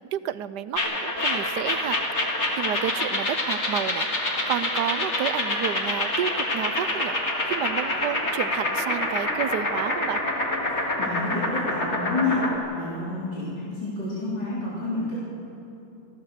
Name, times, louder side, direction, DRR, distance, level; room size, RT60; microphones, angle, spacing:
voice 1, 0.1-4.1 4.5-7.2 7.5-10.2, right 10 dB, 80° right, 14 dB, 1.3 m, -30 dB
sound 1, 0.8-12.6, left 1 dB, 40° left, 2.5 m, -27 dB
voice 2, 10.7-12.4 12.8-15.2, left 3 dB, 90° left, -8 dB, 4.0 m, -29 dB
27.0 x 15.0 x 6.6 m, 2.9 s
omnidirectional pair, 1.8 m